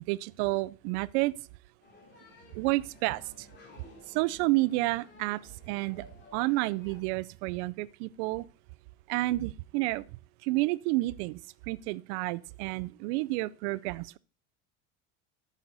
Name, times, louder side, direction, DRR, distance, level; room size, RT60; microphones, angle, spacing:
voice 1, 0.1-1.3 2.6-3.5 4.1-5.4 5.7-6.1 6.3-8.4 9.1-10.0 10.4-11.4 11.7-14.2, right 20 dB, 75° right, 0.5 m, -30 dB
sound 1, 1.8-7.0, left 3 dB, 30° left, 3.0 m, -55 dB
9.1 x 6.9 x 3.9 m
cardioid pair, 145°, 35 cm